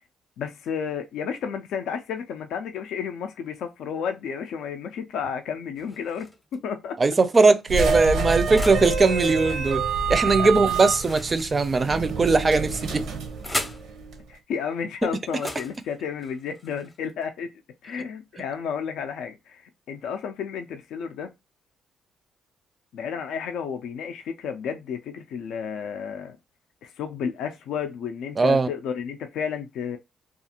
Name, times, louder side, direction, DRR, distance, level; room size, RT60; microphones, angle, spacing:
voice 1, 0.4-6.3 6.6-7.0 10.4-10.5 14.3-17.5 17.8-21.3 22.9-26.4 26.8-30.0, left 7 dB, 80° left, 0.4 m, -32 dB
sound 1, 5.8-6.6 7.3-8.9 10.9-12.1 12.9-13.9 15.3-17.2, left 1 dB, 15° left, 0.6 m, -37 dB
voice 2, 7.0-9.8 10.1-13.0 28.4-28.7, right 3 dB, 30° right, 0.4 m, -20 dB
sound 2, 7.7-14.2, right 4 dB, 80° right, 0.6 m, -27 dB
2.4 x 2.4 x 2.8 m
cardioid pair, 90°, 0 cm